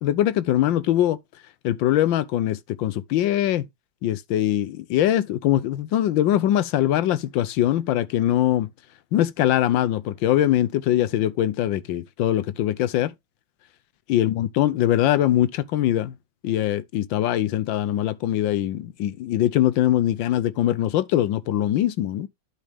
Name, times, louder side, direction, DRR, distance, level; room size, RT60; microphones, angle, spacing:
voice 1, 0.0-1.2 1.6-3.7 4.0-8.7 9.1-13.1 14.1-16.1 16.4-22.3, left 12 dB, 85° left, 1.4 m, -22 dB
11.5 x 4.3 x 3.4 m
omnidirectional pair, 2.0 m